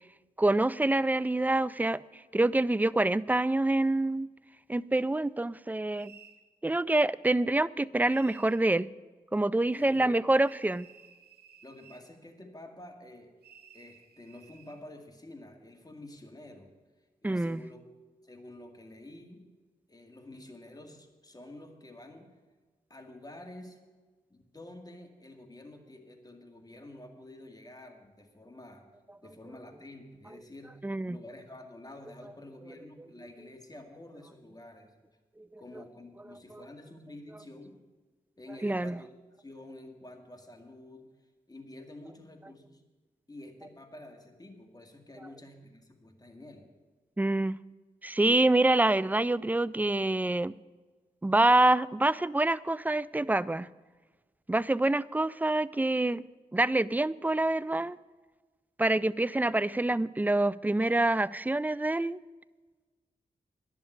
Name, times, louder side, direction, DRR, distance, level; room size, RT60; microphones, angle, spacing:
voice 1, 0.4-2.0 2.3-4.3 4.7-6.1 6.6-8.9 9.3-10.9 17.2-17.6 30.8-31.2 35.5-35.6 38.6-39.0 47.2-47.6 48.0-50.5 51.2-53.7 54.5-56.2 56.5-58.0 58.8-62.2, right 2 dB, 10° right, 0.4 m, -26 dB
sound 1, 5.9-6.4 8.1-8.6 10.4-12.1 13.4-14.8, right 7 dB, 90° right, 1.0 m, -55 dB
voice 2, 11.6-13.3 13.7-16.7 17.2-17.8 18.2-19.4 19.9-22.3 22.9-23.8 24.3-28.9 29.2-34.9 35.6-37.8 38.4-39.1 39.4-41.1 41.5-42.8 43.3-46.6, left 1 dB, 25° left, 2.2 m, -49 dB
11.0 x 7.1 x 9.5 m
cardioid pair, 50°, 16 cm